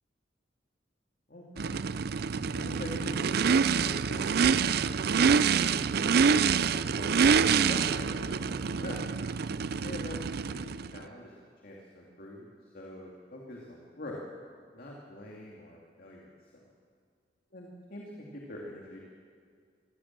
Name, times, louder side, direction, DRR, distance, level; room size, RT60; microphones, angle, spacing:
voice 1, 1.3-1.8 2.3-6.1 6.4-7.3 7.7-9.0 9.8-11.3 11.6-14.2 14.7-16.6 17.5-19.0, left 1 dB, 55° left, -2 dB, 2.6 m, -45 dB
Race car auto racing / Idling / Accelerating revving vroom, 1.6-11.0, right 6 dB, 60° right, 0.5 m, -26 dB
26.0 x 15.5 x 7.5 m, 2.1 s
head